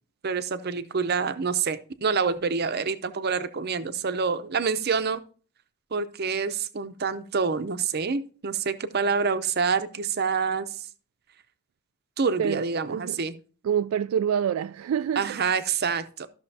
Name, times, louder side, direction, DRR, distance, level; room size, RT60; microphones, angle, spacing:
voice 1, 0.2-5.2 5.9-10.7 12.2-13.4 15.2-16.3, right 5 dB, 50° right, 0.7 m, -27 dB
voice 2, 13.6-15.4, right 8 dB, 85° right, 0.3 m, -26 dB
14.0 x 6.2 x 2.8 m
head